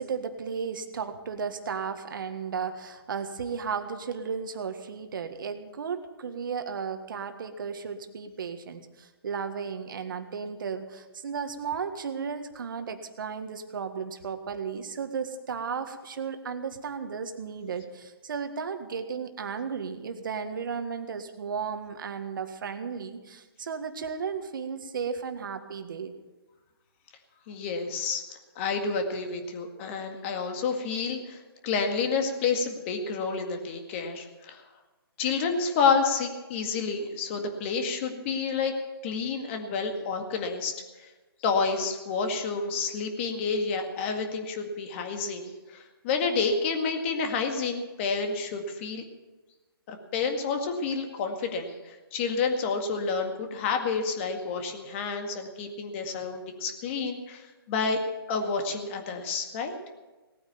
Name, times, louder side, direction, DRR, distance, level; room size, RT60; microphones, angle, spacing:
voice 1, 0.0-26.1, right 6 dB, 55° right, 8 dB, 1.7 m, -34 dB
voice 2, 27.5-28.2 28.6-34.6 35.2-38.7 39.0-40.7 41.4-49.0 49.9-58.0 58.3-59.8, left 5 dB, 30° left, 5 dB, 1.9 m, -29 dB
18.5 x 9.4 x 6.9 m, 1.2 s
hypercardioid pair, 150°, 13 cm